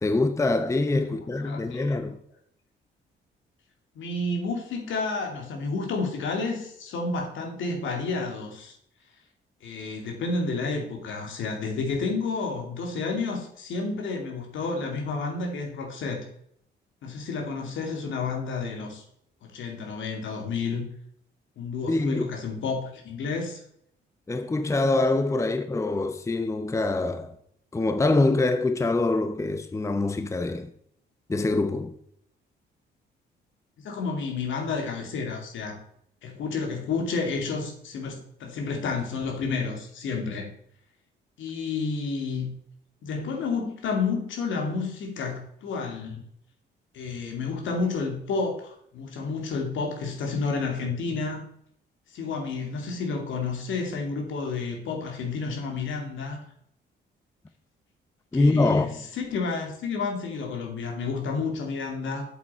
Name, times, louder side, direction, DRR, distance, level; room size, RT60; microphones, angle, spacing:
voice 1, 0.0-2.2 21.9-22.2 24.3-27.3 27.7-30.7 31.3-31.9 58.3-58.9, left 2 dB, 15° left, 0.7 m, -24 dB
voice 2, 1.4-2.0 3.9-8.8 9.6-16.2 17.0-19.0 19.4-20.9 21.6-23.6 33.8-35.8 36.2-40.5 41.4-42.5 43.0-46.2 46.9-51.4 52.1-56.4 58.3-62.3, left 4 dB, 75° left, 2.6 m, -30 dB
8.0 x 7.5 x 4.4 m
cardioid pair, 90°, 20 cm